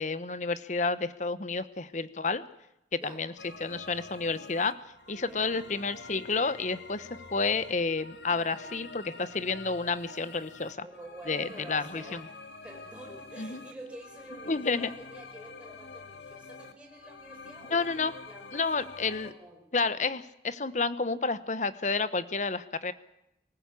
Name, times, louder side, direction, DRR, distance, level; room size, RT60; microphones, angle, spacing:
voice 1, 0.0-2.4 2.9-3.3 3.6-4.8 5.1-10.8 11.3-12.2 13.4-13.6 14.5-14.9 17.7-18.1 18.5-19.3 19.7-22.9, left 4 dB, 45° left, 14 dB, 1.0 m, -30 dB
voice 2, 2.9-3.2 5.3-5.6 8.4-8.8 10.8-12.2 12.6-19.6, right 1 dB, 5° right, 0 dB, 5.7 m, -48 dB
sound 1, 3.4-19.3, left 3 dB, 80° left, 2.0 m, -47 dB
24.5 x 15.0 x 8.4 m, 0.86 s
head